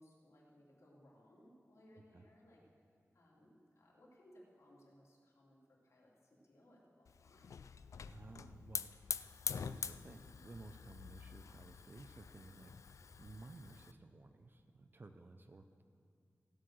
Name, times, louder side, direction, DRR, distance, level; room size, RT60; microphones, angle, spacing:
voice 1, 0.0-2.6 3.1-7.6, equal, 70° left, -4 dB, 3.1 m, -64 dB
Hiss / Fire, 7.1-13.9, left 6 dB, 85° left, 0.3 m, -46 dB
voice 2, 8.0-15.8, right 2 dB, 40° right, 7 dB, 0.6 m, -56 dB
16.0 x 7.8 x 6.3 m, 2.3 s
wide cardioid pair, 95°, 5 cm